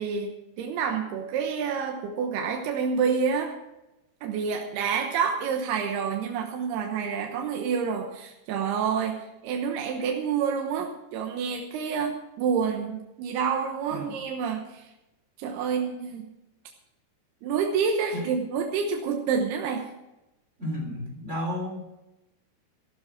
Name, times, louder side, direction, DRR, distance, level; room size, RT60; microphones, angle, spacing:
voice 1, 0.0-3.5 4.2-14.6 15.4-16.2 17.4-19.9, right 6 dB, 90° right, 2 dB, 3.1 m, -28 dB
voice 2, 13.9-14.2 18.1-18.3 20.6-22.0, left 1 dB, 20° right, 1 dB, 3.1 m, -33 dB
15.0 x 12.0 x 4.8 m, 0.94 s
omnidirectional pair, 4.6 m